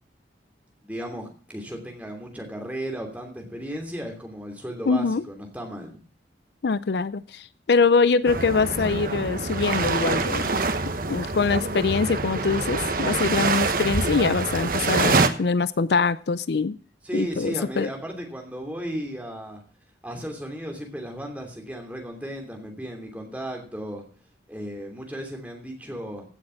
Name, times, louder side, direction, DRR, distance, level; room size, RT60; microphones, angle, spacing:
voice 1, 0.8-6.0 17.0-19.6 20.0-24.0 24.5-26.2, equal, 10° right, 2 dB, 2.8 m, -35 dB
voice 2, 4.9-5.2 6.6-10.5 11.1-16.8 17.1-17.9, left 4 dB, 65° left, 16 dB, 0.5 m, -23 dB
sound 1, 8.3-15.3, right 3 dB, 50° right, 1.1 m, -25 dB
16.0 x 6.5 x 5.7 m, 0.43 s
head